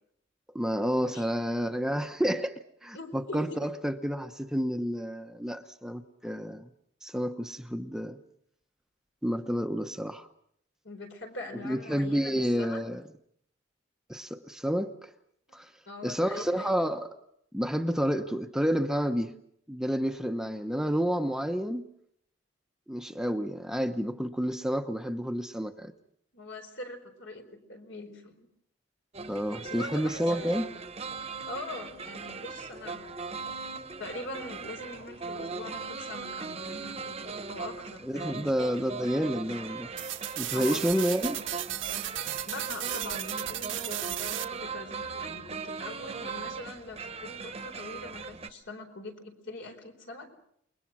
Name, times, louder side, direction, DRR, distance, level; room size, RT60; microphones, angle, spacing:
voice 1, 0.5-2.5 2.8-6.7 7.0-8.2 9.2-10.3 11.6-13.0 14.1-15.1 15.5-15.7 16.0-17.1 17.5-19.3 19.7-21.8 22.9-25.9 29.3-30.7 38.0-39.9 40.4-41.4, equal, 5° right, 0.9 m, -30 dB
voice 2, 2.9-3.7 10.8-12.8 15.9-16.7 26.3-28.5 29.6-30.6 31.5-33.1 34.0-38.5 40.5-40.9 42.4-50.3, left 2 dB, 70° left, 4.5 m, -42 dB
sound 1, 29.1-48.5, right 4 dB, 30° right, 1.1 m, -39 dB
sound 2, 40.0-44.4, right 13 dB, 90° right, 1.4 m, -35 dB
28.5 x 22.0 x 6.2 m
head